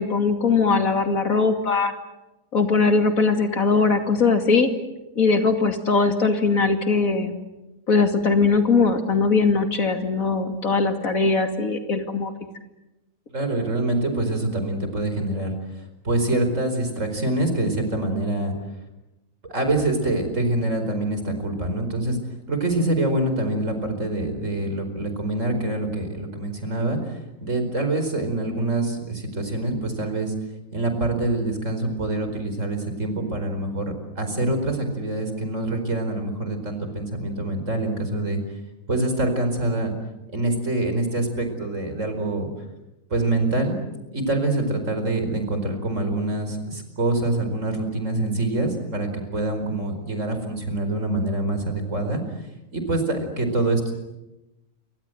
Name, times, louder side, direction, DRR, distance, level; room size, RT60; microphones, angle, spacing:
voice 1, 0.0-1.9 2.5-4.7 5.2-7.3 7.9-12.3, left 4 dB, 80° left, 5 dB, 3.0 m, -20 dB
voice 2, 13.3-15.5 16.0-18.5 19.5-22.2 22.5-30.3 30.7-33.8 34.2-38.4 38.9-39.9 40.3-42.5 43.1-43.8 44.1-52.2 52.7-53.9, right 2 dB, 65° right, 7 dB, 5.1 m, -25 dB
28.5 x 25.5 x 7.9 m, 0.99 s
omnidirectional pair, 1.4 m